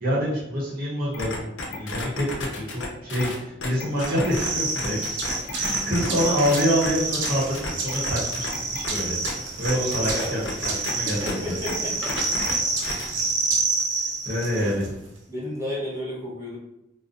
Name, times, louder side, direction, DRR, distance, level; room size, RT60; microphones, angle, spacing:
voice 1, 0.0-5.2 5.5-9.2 9.6-11.5 12.9-13.1 14.2-14.9, equal, 55° right, -6 dB, 0.8 m, -26 dB
sound 1, 1.1-4.5 4.8-6.9 7.2-9.3 9.6-10.9 11.3-11.4 11.7-11.8 12.1-12.6 12.8-13.1, left 2 dB, 90° left, 0.5 m, -32 dB
sound 2, 4.0-14.9, right 3 dB, 90° right, 0.5 m, -28 dB
voice 2, 9.7-10.4 10.7-12.2 12.8-13.3 15.3-16.6, equal, 15° right, -6 dB, 0.8 m, -33 dB
2.5 x 2.1 x 2.4 m, 0.85 s
head